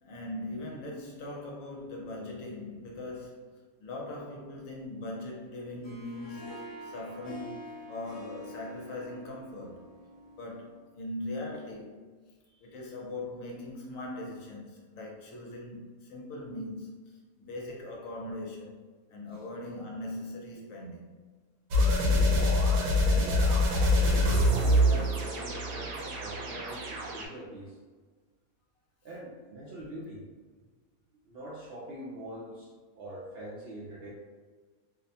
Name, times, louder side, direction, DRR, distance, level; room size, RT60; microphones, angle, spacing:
voice 1, 0.0-9.9 10.4-12.0 12.6-21.2, left 1 dB, 70° left, -1 dB, 1.0 m, -40 dB
Harp, 5.6-10.8, equal, 35° left, 1.2 m, -46 dB
voice 2, 12.4-12.7 17.4-17.5 19.3-19.4 22.9-23.4 23.9-27.8 29.0-30.2 31.2-34.1, right 1 dB, 70° right, -6 dB, 0.6 m, -44 dB
sound 1, 21.7-27.3, left 1 dB, 85° right, 1.0 m, -25 dB
2.6 x 2.1 x 2.7 m, 1.4 s
omnidirectional pair, 1.5 m